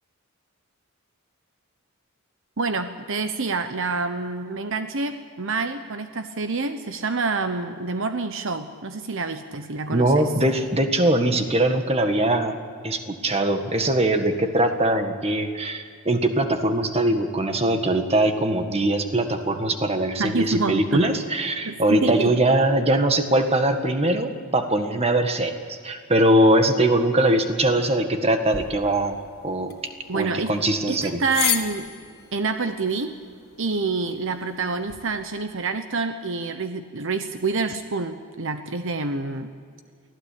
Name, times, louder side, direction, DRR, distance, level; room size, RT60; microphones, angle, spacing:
voice 1, 2.6-10.3 20.2-21.1 21.7-22.3 30.1-30.5 30.9-31.9 32.3-33.1 33.6-39.5, right 4 dB, 60° right, 8 dB, 1.0 m, -27 dB
voice 2, 9.9-12.6 12.8-29.7 30.1-31.2, right 1 dB, 30° right, 6 dB, 1.7 m, -21 dB
sound 1, 28.5-35.0, left 11 dB, 45° left, 2.0 m, -34 dB
24.0 x 16.0 x 8.6 m, 2.1 s
head